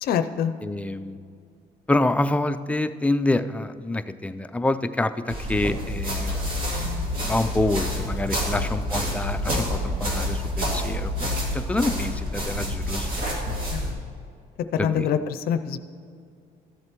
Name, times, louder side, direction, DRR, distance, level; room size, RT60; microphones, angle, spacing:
voice 1, 0.0-0.5 13.7-14.0 14.7-15.8, left 8 dB, 65° left, 10 dB, 0.5 m, -25 dB
voice 2, 0.6-1.2 1.9-6.7 7.2-13.5 14.8-15.1, left 2 dB, 10° left, 9 dB, 0.3 m, -27 dB
sound 1, 5.3-13.9, left 1 dB, 55° right, 2.4 m, -28 dB
14.0 x 7.7 x 3.0 m, 2.3 s
cardioid pair, 110°, 17 cm